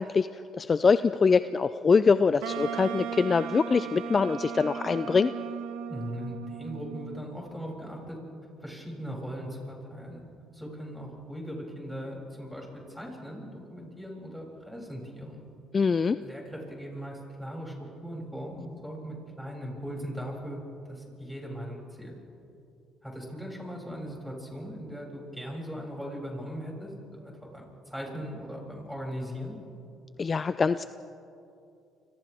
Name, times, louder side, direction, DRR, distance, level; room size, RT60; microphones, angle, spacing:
voice 1, 0.0-5.3 15.7-16.2 30.2-30.9, left 5 dB, 35° left, 13 dB, 0.4 m, -24 dB
Wind instrument woodwind instrument, 2.4-7.4, right 8 dB, 90° right, 1.2 m, -37 dB
voice 2, 5.9-8.2 8.6-10.2 10.5-15.4 16.2-17.7 18.0-20.6 20.8-22.1 23.0-29.6, equal, ahead, -2 dB, 7.3 m, -39 dB
29.5 x 26.5 x 3.6 m, 2.6 s
supercardioid pair, 85°, 0 cm